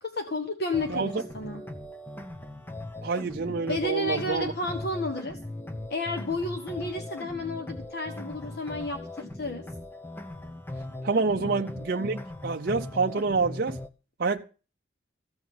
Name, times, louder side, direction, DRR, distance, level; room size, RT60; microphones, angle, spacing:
voice 1, 0.0-1.6 3.4-5.4 5.9-9.7 11.3-11.7, left 2 dB, 55° left, 1.3 m, -32 dB
sound 1, 0.7-13.9, left 1 dB, 10° left, 0.9 m, -39 dB
voice 2, 0.9-1.2 3.0-4.5 11.0-13.8 14.2-14.5, right 4 dB, 50° right, 0.6 m, -27 dB
15.0 x 5.8 x 9.4 m
head